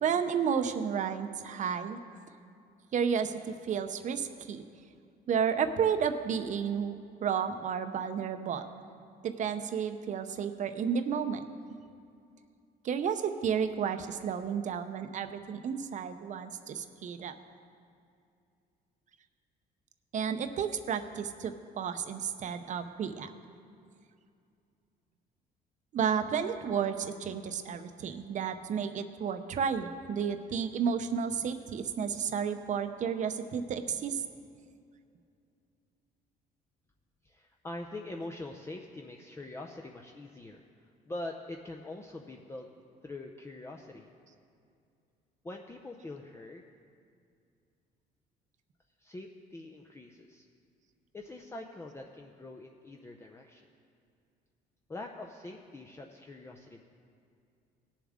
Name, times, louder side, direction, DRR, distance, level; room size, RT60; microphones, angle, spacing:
voice 1, 0.0-2.0 2.9-4.6 5.3-7.0 7.2-8.7 9.2-11.4 12.8-17.3 20.1-23.3 25.9-34.2, right 7 dB, 45° right, 9 dB, 0.7 m, -32 dB
voice 2, 37.2-40.6 41.1-42.7 43.0-44.1 45.4-46.7 49.0-50.5 51.1-53.7 54.9-56.9, left 2 dB, 15° left, 1 dB, 0.6 m, -44 dB
18.5 x 7.2 x 3.6 m, 2.5 s
cardioid pair, 110°, 17 cm